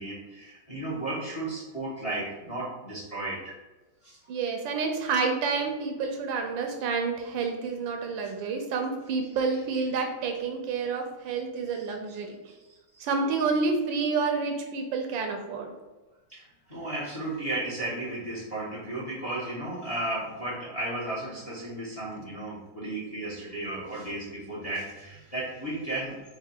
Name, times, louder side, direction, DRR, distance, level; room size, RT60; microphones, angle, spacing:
voice 1, 0.0-3.6 4.0-4.2 8.2-8.3 11.7-11.8 12.7-13.1 16.3-26.2, right 2 dB, 25° left, -7 dB, 1.0 m, -34 dB
voice 2, 4.3-12.4 13.0-15.7, right 4 dB, 80° right, 4 dB, 1.3 m, -29 dB
3.9 x 2.7 x 4.5 m, 1.2 s
omnidirectional pair, 2.1 m